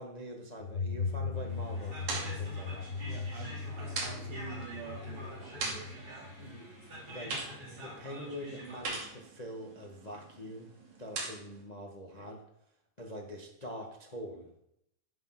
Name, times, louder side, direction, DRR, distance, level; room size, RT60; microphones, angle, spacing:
voice 1, 0.0-2.9 6.4-7.4 7.7-10.7 11.0-12.4 13.0-14.5, equal, 65° left, 1 dB, 0.4 m, -44 dB
sound 1, 0.6-7.1, left 4 dB, 45° left, 0.9 m, -38 dB
sound 2, 1.3-8.8, equal, 25° right, 4.1 m, -47 dB
sound 3, 1.5-11.6, right 3 dB, 55° right, 3.9 m, -43 dB
voice 2, 3.0-6.1, right 7 dB, 85° right, 2 dB, 3.7 m, -48 dB
11.0 x 10.5 x 6.0 m, 0.78 s
omnidirectional pair, 3.9 m